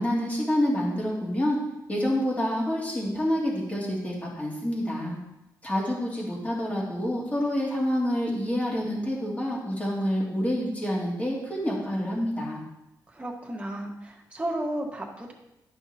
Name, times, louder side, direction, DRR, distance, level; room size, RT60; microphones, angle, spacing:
voice 1, 0.0-1.6 1.9-5.2 5.6-12.6, equal, 20° left, -4 dB, 2.4 m, -27 dB
voice 2, 13.1-15.3, right 1 dB, 15° right, -2 dB, 1.5 m, -33 dB
10.5 x 5.8 x 2.8 m, 0.91 s
wide cardioid pair, 105°, 8 cm